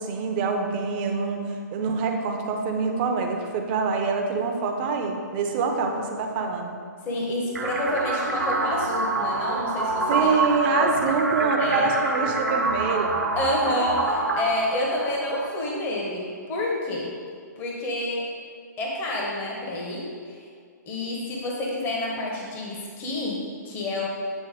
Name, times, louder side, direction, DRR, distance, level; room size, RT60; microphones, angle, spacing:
voice 1, 0.0-6.8 10.1-13.2, right 4 dB, 35° right, 3 dB, 0.7 m, -25 dB
voice 2, 7.0-10.3 10.7-10.9 11.6-11.9 13.4-17.1 17.6-18.3 18.8-20.5 20.9-24.1, left 1 dB, 20° left, -2 dB, 1.0 m, -28 dB
sound 1, 7.6-15.5, right 3 dB, 70° right, 1.1 m, -26 dB
8.3 x 2.9 x 5.0 m, 2.1 s
figure-of-eight pair, 135°, 10 cm